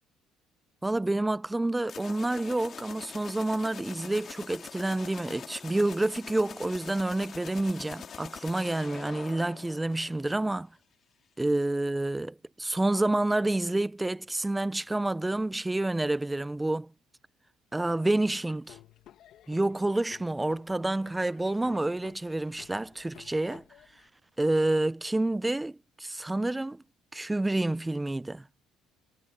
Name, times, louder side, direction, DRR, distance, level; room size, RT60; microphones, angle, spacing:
voice 1, 0.8-10.7 11.4-16.9 17.7-18.8 19.5-23.6 24.4-26.8 27.1-28.4, right 2 dB, 10° right, 0.8 m, -28 dB
sound 1, 1.8-10.5, left 7 dB, 45° left, 2.5 m, -44 dB
Laughter / Drum, 18.1-24.1, left 12 dB, 65° left, 2.2 m, -55 dB
supercardioid pair, 75°, 0 cm